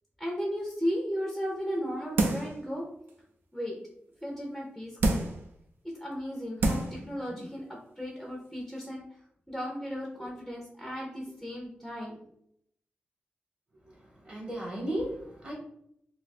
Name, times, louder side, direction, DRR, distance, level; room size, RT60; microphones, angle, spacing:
voice 1, 0.2-2.8 3.5-3.8 4.2-5.2 6.0-9.0 9.5-12.2, equal, ahead, -2 dB, 0.5 m, -35 dB
sound 1, 2.2-2.6 3.1-3.2 5.0-5.4 6.1-6.2 6.6-7.0 7.4-7.5, right 2 dB, 75° right, 0.5 m, -27 dB
voice 2, 14.2-15.5, right 1 dB, 35° right, -4 dB, 0.9 m, -34 dB
2.7 x 2.2 x 4.1 m, 0.73 s
wide cardioid pair, 175°, 4 cm